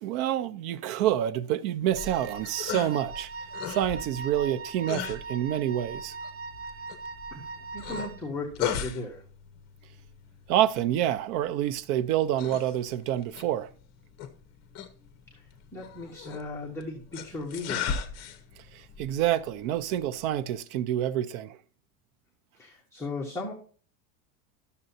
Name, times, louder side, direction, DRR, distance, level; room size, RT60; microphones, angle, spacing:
voice 1, 0.0-3.3 3.7-6.2 10.5-13.7 18.6-21.6, right 12 dB, 70° right, 0.7 m, -27 dB
sound 1, 1.8-20.6, left 8 dB, 35° left, 0.9 m, -39 dB
Wind instrument woodwind instrument, 2.0-8.3, right 4 dB, 25° right, 0.6 m, -40 dB
voice 2, 7.7-9.2 15.3-15.4 15.7-17.9 22.6-23.5, left 2 dB, 5° left, 1.1 m, -36 dB
12.0 x 6.9 x 2.7 m
cardioid pair, 165°, 44 cm